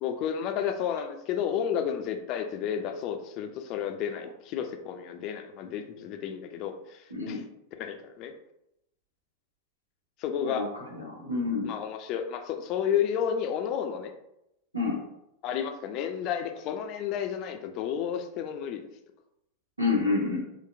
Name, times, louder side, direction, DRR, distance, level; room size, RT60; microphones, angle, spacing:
voice 1, 0.0-7.4 7.7-8.3 10.2-10.6 11.6-14.1 15.4-18.8, left 8 dB, 40° left, 5 dB, 0.4 m, -31 dB
voice 2, 7.1-7.4 10.4-10.6 10.9-11.7 14.7-15.0 19.8-20.4, left 4 dB, 85° right, -4 dB, 1.0 m, -28 dB
3.8 x 2.0 x 2.5 m, 0.82 s
figure-of-eight pair, 90°, 0 cm